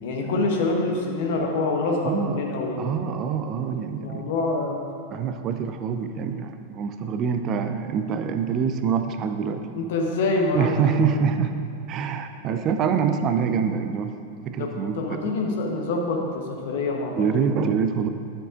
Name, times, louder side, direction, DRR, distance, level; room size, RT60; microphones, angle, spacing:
voice 1, 0.0-3.0 4.0-4.8 9.7-11.0 12.5-12.6 14.6-17.3, left 3 dB, 55° left, 1 dB, 1.0 m, -26 dB
voice 2, 2.0-2.4 2.8-4.3 5.1-9.7 10.5-11.6 11.9-14.1 14.5-15.2 17.2-18.1, right 6 dB, 35° right, 8 dB, 0.5 m, -25 dB
11.5 x 7.4 x 2.5 m, 2.4 s
figure-of-eight pair, 90°, 0 cm